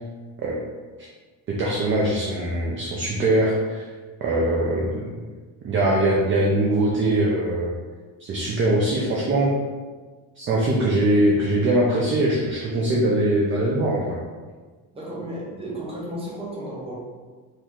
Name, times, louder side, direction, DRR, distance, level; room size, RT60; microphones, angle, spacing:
voice 1, 1.5-3.9 4.2-5.1 5.6-7.7 8.2-9.5 10.4-14.2, right 1 dB, 30° right, -3 dB, 0.5 m, -22 dB
voice 2, 14.9-17.0, right 1 dB, 15° right, -5 dB, 1.0 m, -33 dB
4.5 x 3.1 x 3.7 m, 1.4 s
cardioid pair, 170°, 41 cm